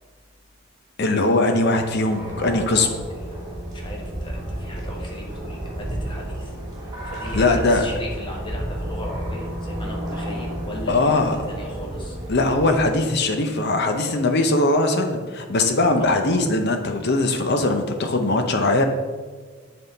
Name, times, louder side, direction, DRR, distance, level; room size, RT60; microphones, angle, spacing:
voice 1, 1.0-2.9 7.3-7.8 10.9-11.4 12.3-18.9, left 2 dB, 50° left, 5 dB, 0.7 m, -20 dB
sound 1, 2.1-12.8, right 1 dB, 20° right, 1.4 m, -32 dB
voice 2, 3.1-6.5 7.0-12.2 16.0-16.4, left 1 dB, 20° left, -1 dB, 1.0 m, -37 dB
7.9 x 3.7 x 3.9 m, 1.5 s
head